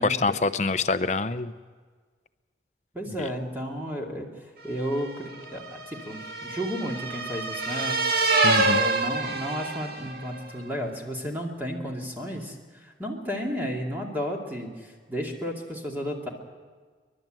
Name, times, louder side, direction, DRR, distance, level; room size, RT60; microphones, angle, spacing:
voice 1, 0.0-1.5 3.1-3.3 8.4-8.9, left 3 dB, 40° left, 11 dB, 0.7 m, -26 dB
voice 2, 2.9-4.3 4.6-8.0 8.6-16.3, equal, 10° right, -1 dB, 2.4 m, -33 dB
sound 1, 4.8-10.3, right 3 dB, 55° right, 2.1 m, -26 dB
29.5 x 12.0 x 7.6 m, 1.5 s
head